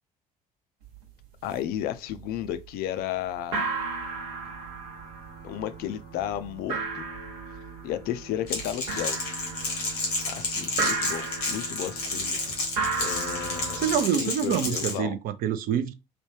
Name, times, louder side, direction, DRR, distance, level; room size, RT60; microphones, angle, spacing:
sound 1, 0.8-1.0 1.2-1.8 2.1-2.7 3.0-3.1 3.4-14.0, right 4 dB, 75° right, 0.8 m, -34 dB
voice 1, 1.4-3.7 5.4-7.1 7.8-9.2 10.3-12.6 13.0-13.8 14.2-15.2, left 11 dB, 55° left, 0.4 m, -33 dB
Crackle, 8.5-15.0, left 3 dB, 85° left, 1.0 m, -31 dB
voice 2, 13.8-15.9, right 8 dB, 50° right, 0.4 m, -26 dB
3.2 x 2.1 x 3.0 m
figure-of-eight pair, 55°, 19 cm